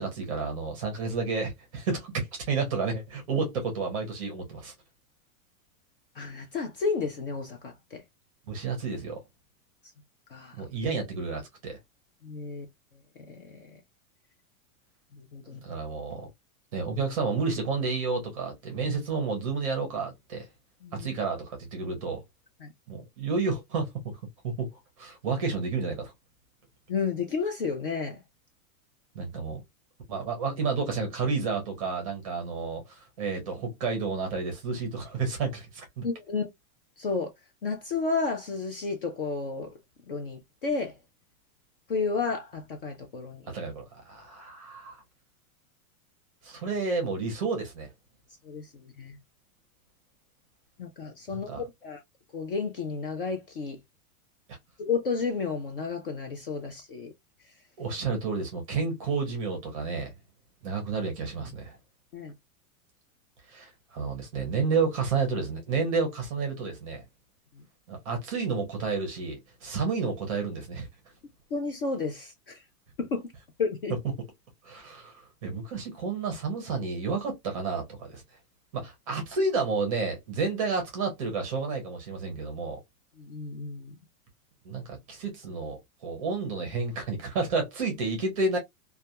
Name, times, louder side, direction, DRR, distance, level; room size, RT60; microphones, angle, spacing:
voice 1, 0.0-4.7 8.5-9.2 10.6-11.8 15.6-16.3 16.7-20.5 20.9-22.2 22.9-24.2 24.4-24.7 25.0-26.1 29.1-29.6 30.1-36.1 43.5-45.0 46.4-47.9 51.3-51.6 57.8-60.1 60.6-61.8 63.5-67.0 67.9-70.9 74.0-74.1 74.6-75.1 75.4-78.2 78.7-82.8 84.6-88.6, right 4 dB, 25° right, 0.6 m, -31 dB
voice 2, 6.2-8.0 10.3-10.6 12.2-12.7 13.3-13.7 15.1-15.6 20.8-21.1 22.6-22.7 26.9-28.2 36.0-36.5 37.0-37.3 37.6-39.7 40.1-40.9 41.9-43.5 48.4-49.2 50.8-52.0 52.3-53.8 54.8-57.1 62.1-62.3 71.5-72.6 73.0-73.2 73.6-73.9 83.2-83.9, left 4 dB, 40° left, 0.4 m, -32 dB
2.3 x 2.2 x 2.7 m
supercardioid pair, 180°, 43 cm